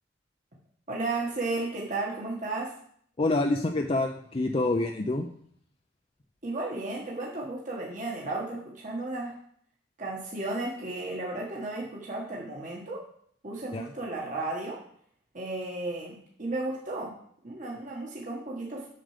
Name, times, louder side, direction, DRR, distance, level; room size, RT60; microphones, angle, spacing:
voice 1, 0.9-2.7 6.4-9.4 10.0-13.0 13.4-14.8 15.3-17.2 17.4-18.9, right 2 dB, 45° right, -3 dB, 1.6 m, -34 dB
voice 2, 3.2-5.3 13.7-13.9, left 2 dB, 30° left, 3 dB, 0.6 m, -27 dB
7.5 x 6.9 x 5.0 m, 0.64 s
head